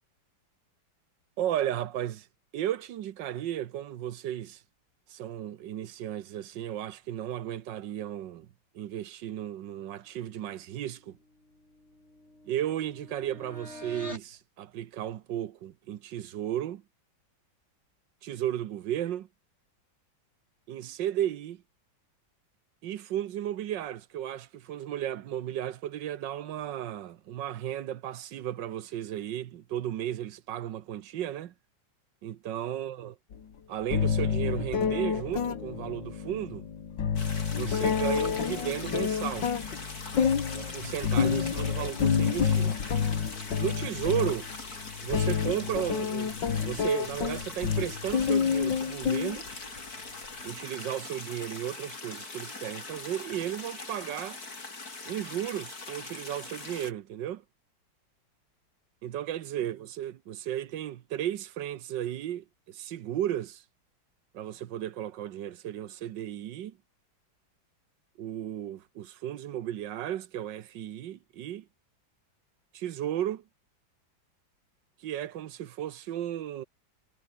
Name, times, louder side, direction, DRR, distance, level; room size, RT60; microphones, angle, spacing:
voice 1, 1.4-2.3 2.5-4.6 5.1-8.5 8.7-11.2 12.5-16.8 18.2-19.3 20.7-21.6 22.8-31.5 32.2-33.1 33.7-36.7 37.5-39.5 40.5-42.7 43.6-44.5 45.0-49.5 50.4-54.4 55.0-57.4 59.0-63.6 64.3-66.8 68.2-71.7 72.7-73.4 75.0-76.6, right 11 dB, 70° right, 1.5 m, -34 dB
sound 1, 11.2-14.4, left 1 dB, 35° left, 6.8 m, -46 dB
sound 2, 33.3-33.4 33.9-49.8, left 7 dB, 70° left, 2.6 m, -29 dB
sound 3, 37.2-56.9, left 3 dB, 50° left, 4.7 m, -42 dB
omnidirectional pair, 2.1 m